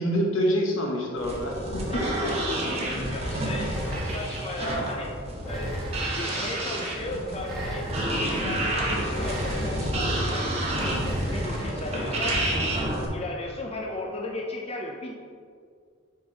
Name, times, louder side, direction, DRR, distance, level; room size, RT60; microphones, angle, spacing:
voice 1, 0.0-2.0 3.6-3.8, equal, 75° left, 0 dB, 1.2 m, -26 dB
sound 1, 1.2-13.1, right 1 dB, 30° right, 1.2 m, -29 dB
voice 2, 1.9-2.3 3.1-5.2 5.4-5.8 6.1-7.9 8.4-10.9 11.3-12.5 13.0-15.1, left 1 dB, 30° left, 0 dB, 0.5 m, -35 dB
sound 2, 3.6-4.5 5.4-6.3 7.3-8.2 9.1-10.0 10.8-11.7, equal, ahead, 1.7 m, -35 dB
7.0 x 5.2 x 4.0 m, 2.2 s
head